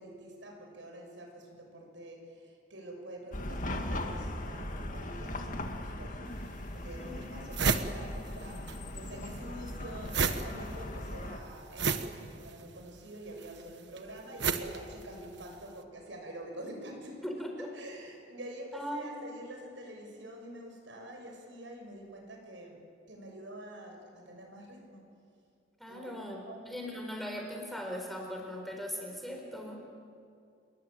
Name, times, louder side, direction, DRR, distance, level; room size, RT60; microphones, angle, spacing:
voice 1, 0.0-17.3 17.7-25.0 25.9-26.7, right 1 dB, 85° right, 2 dB, 6.7 m, -47 dB
Chatter / Car passing by / Traffic noise roadway noise, 3.3-11.4, left 1 dB, 45° left, 2.1 m, -39 dB
sound 1, 6.3-6.4 6.9-7.0 7.2-8.8 9.0-15.6, right 5 dB, 65° right, 1.4 m, -33 dB
voice 2, 7.0-7.4 17.2-17.5 18.7-19.1 25.8-26.4 26.7-29.8, equal, ahead, 1 dB, 4.4 m, -39 dB
28.0 x 22.0 x 9.0 m, 2.4 s
head